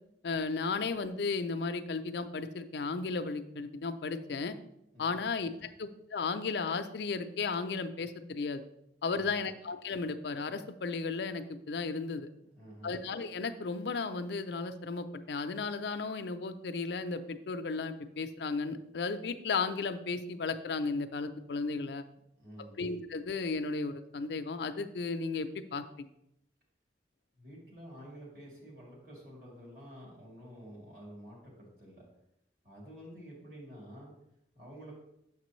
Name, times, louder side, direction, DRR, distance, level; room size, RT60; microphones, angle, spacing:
voice 1, 0.2-4.5 5.0-8.7 9.0-12.3 12.8-22.0 22.8-26.1, left 4 dB, 75° left, 8 dB, 0.5 m, -34 dB
voice 2, 9.1-9.5 12.4-13.0 22.4-22.7 27.4-32.0 32.6-34.1 34.5-34.9, equal, 55° right, -3 dB, 2.8 m, -50 dB
7.1 x 6.0 x 3.1 m, 0.80 s
head